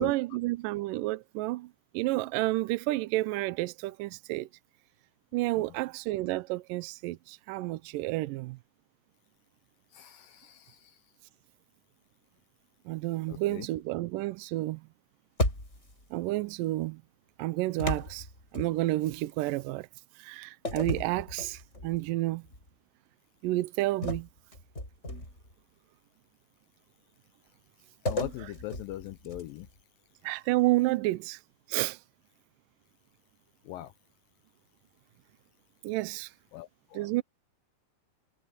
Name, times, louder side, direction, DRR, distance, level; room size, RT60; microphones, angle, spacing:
voice 1, 0.0-1.7 1.9-4.5 5.3-8.6 12.9-14.8 16.1-17.0 17.4-18.3 18.5-19.9 20.2-22.4 23.4-24.3 28.4-28.5 30.2-31.4 31.7-32.0 35.8-36.3 36.9-37.2, right 18 dB, 85° right, 1.9 m, -30 dB
voice 2, 9.9-10.8 13.3-13.7 28.1-29.7 33.7-33.9 36.5-37.1, left 15 dB, 80° left, 2.2 m, -40 dB
sound 1, 15.4-16.0 17.8-19.1 20.6-22.0 22.5-22.7 24.0-25.5 28.1-29.7, left 1 dB, 15° left, 8.1 m, -34 dB
omnidirectional pair, 4.6 m